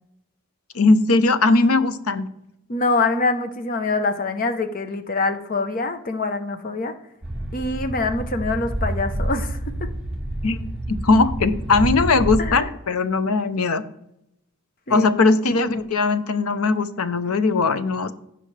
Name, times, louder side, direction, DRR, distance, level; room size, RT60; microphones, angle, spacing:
voice 1, 0.7-2.3 10.4-10.6 10.9-13.8 14.9-18.1, left 3 dB, 85° left, 13 dB, 0.7 m, -19 dB
voice 2, 2.7-6.9 7.5-9.9 12.4-12.7 14.9-15.1, left 3 dB, 40° left, 9 dB, 0.8 m, -25 dB
sound 1, 7.2-12.6, right 1 dB, 5° right, 1.4 m, -28 dB
16.0 x 5.6 x 3.3 m, 0.81 s
head